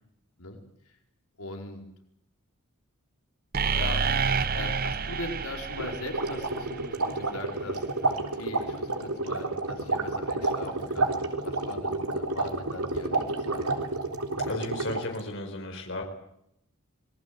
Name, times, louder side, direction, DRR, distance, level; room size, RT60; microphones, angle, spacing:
voice 1, 1.4-1.8 3.7-13.9, left 2 dB, 85° left, 2 dB, 4.9 m, -40 dB
sound 1, 3.5-7.4, right 5 dB, 45° right, 0.8 m, -29 dB
sound 2, 5.8-15.2, right 2 dB, 80° right, 3.6 m, -30 dB
voice 2, 14.4-16.0, left 2 dB, 55° left, 3 dB, 4.7 m, -34 dB
26.0 x 20.0 x 8.0 m, 0.77 s
head